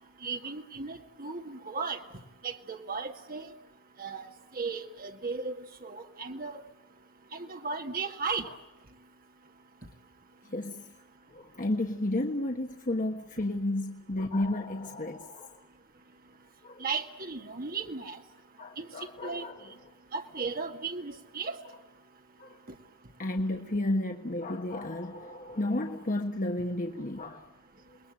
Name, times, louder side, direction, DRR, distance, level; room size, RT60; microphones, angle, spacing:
voice 1, 0.2-2.0 2.4-3.5 4.0-4.3 4.5-6.6 7.3-8.5 16.8-18.2 18.8-18.9 19.2-19.5 20.1-21.6, right 4 dB, 40° right, 5 dB, 2.0 m, -36 dB
voice 2, 10.5-10.8 11.3-15.6 16.6-16.8 18.6-19.6 22.4-22.6 23.2-27.5, left 1 dB, 40° left, 3 dB, 1.4 m, -32 dB
28.0 x 21.0 x 8.8 m, 0.96 s
head